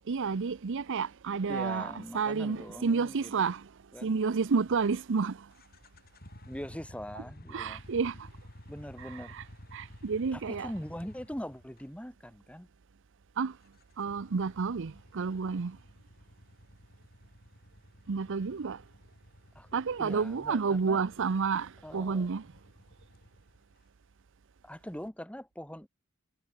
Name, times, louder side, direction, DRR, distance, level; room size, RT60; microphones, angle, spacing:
voice 1, 0.1-3.7 4.0-5.5 7.5-8.3 9.0-9.4 9.7-10.7 13.4-13.6 14.0-15.8 18.1-18.8 19.7-22.5, right 5 dB, 60° right, 0.6 m, -30 dB
voice 2, 1.5-3.3 3.9-4.1 6.5-7.8 8.7-9.4 10.3-12.7 19.6-19.7 20.0-21.0 21.8-22.3 24.6-25.9, equal, 5° left, 5.3 m, -42 dB
sound 1, 5.5-11.9 13.7-23.7, equal, 45° left, 6.4 m, -53 dB
head